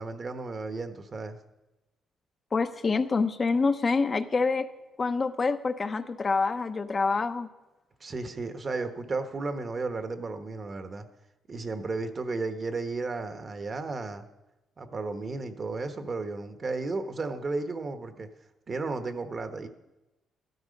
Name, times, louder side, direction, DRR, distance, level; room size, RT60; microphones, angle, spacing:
voice 1, 0.0-1.4 8.0-11.1 11.5-14.3 14.8-18.3 18.7-19.7, right 3 dB, 40° right, 8 dB, 1.2 m, -33 dB
voice 2, 2.5-4.7 5.0-7.5, left 4 dB, 35° left, 8 dB, 0.8 m, -26 dB
14.5 x 12.5 x 5.3 m, 1.0 s
cardioid pair, 90°, 0 cm